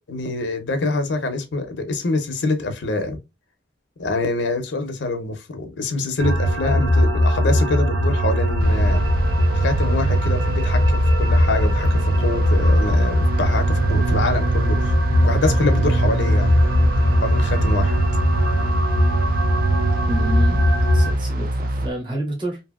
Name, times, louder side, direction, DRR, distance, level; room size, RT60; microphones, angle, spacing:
voice 1, 0.1-3.2 4.0-9.0 9.5-16.5 17.2-18.0, left 2 dB, 75° left, 0.6 m, -25 dB
sound 1, 6.2-21.1, equal, 80° right, 0.8 m, -19 dB
sound 2, 8.6-21.9, right 1 dB, 50° right, 0.4 m, -25 dB
voice 2, 20.1-20.6 20.9-22.6, right 1 dB, 25° right, 0.9 m, -29 dB
2.8 x 2.7 x 2.3 m
head